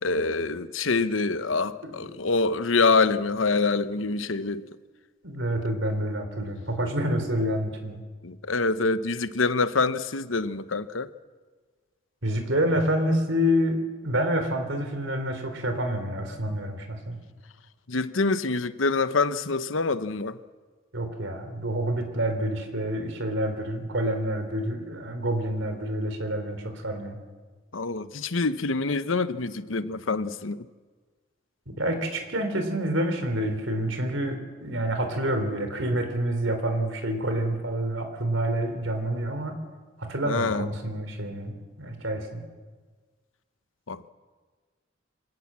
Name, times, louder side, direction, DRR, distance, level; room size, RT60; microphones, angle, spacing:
voice 1, 0.0-4.7 8.2-11.1 17.9-20.4 27.7-30.7 40.2-40.7 43.9-44.1, left 3 dB, 85° left, 1.0 m, -26 dB
voice 2, 5.2-8.0 12.2-17.2 20.9-27.2 31.7-39.6 40.0-41.5 41.8-42.4, right 1 dB, 75° right, 3.6 m, -28 dB
25.5 x 18.0 x 7.5 m
head